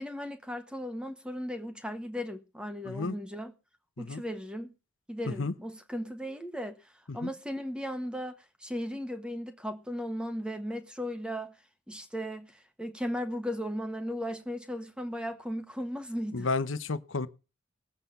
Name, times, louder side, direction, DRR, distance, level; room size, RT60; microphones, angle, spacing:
voice 1, 0.0-3.5 4.0-4.7 5.1-6.8 7.1-11.6 11.9-16.5, equal, 5° right, 1.4 m, -36 dB
voice 2, 2.8-3.1 4.0-4.2 5.3-5.5 7.1-7.3 16.3-17.3, left 3 dB, 75° left, 1.0 m, -32 dB
19.5 x 8.1 x 5.5 m
head